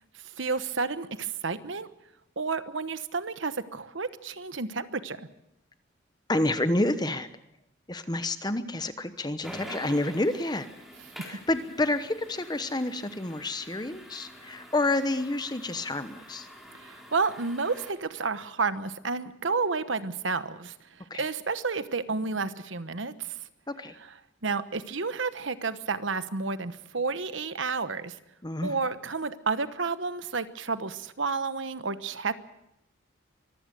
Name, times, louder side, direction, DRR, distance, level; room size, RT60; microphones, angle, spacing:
voice 1, 0.4-1.9 2.4-5.3 16.8-20.7 21.2-23.1 24.4-28.2 28.6-32.3, right 4 dB, 75° right, 12 dB, 1.1 m, -31 dB
voice 2, 6.3-7.3 7.9-10.7 11.3-16.5 21.1-21.3 23.7-23.9 28.4-28.8, left 2 dB, 20° left, 11 dB, 1.0 m, -29 dB
sound 1, 9.4-17.9, equal, ahead, 3.9 m, -47 dB
24.0 x 15.0 x 7.9 m, 0.84 s
head